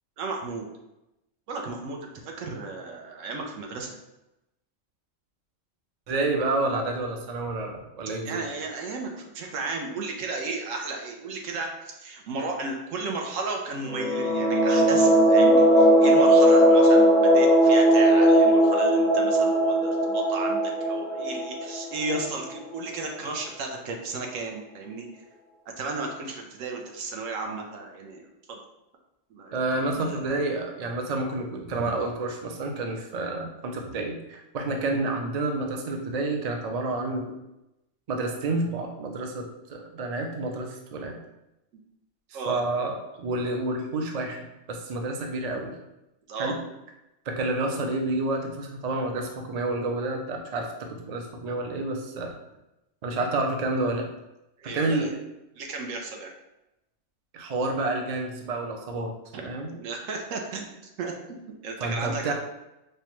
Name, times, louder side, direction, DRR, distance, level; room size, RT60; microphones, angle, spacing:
voice 1, 0.2-0.7 1.5-4.0 8.2-25.2 25.8-28.6 29.3-29.6 30.0-30.5 33.8-33.9 42.3-42.6 46.3-46.5 54.6-55.1 55.5-56.3 59.3-59.4 59.7-61.1 61.6-62.3, right 3 dB, 85° right, 1 dB, 1.0 m, -34 dB
voice 2, 6.1-8.4 29.5-37.3 38.1-41.2 42.5-45.7 46.4-46.6 47.3-52.3 53.0-54.1 54.6-55.2 57.3-59.1 59.4-59.7 61.8-62.3, right 2 dB, 55° right, 2 dB, 0.4 m, -29 dB
sound 1, 13.9-22.5, right 1 dB, 55° left, 0.5 m, -19 dB
4.8 x 2.2 x 3.0 m, 0.92 s
omnidirectional pair, 1.3 m